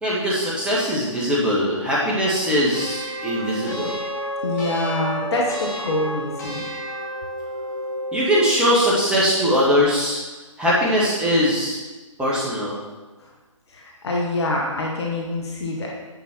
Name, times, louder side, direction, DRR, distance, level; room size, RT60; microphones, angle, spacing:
voice 1, 0.0-4.0 8.1-10.2 10.6-11.8 12.2-12.8, equal, 5° right, -7 dB, 1.8 m, -21 dB
sound 1, 2.7-8.4, equal, 35° left, 2.4 m, -30 dB
voice 2, 4.4-6.6 13.7-15.9, left 2 dB, 55° left, -2 dB, 1.6 m, -25 dB
9.6 x 5.4 x 4.6 m, 1.3 s
figure-of-eight pair, 135°, 17 cm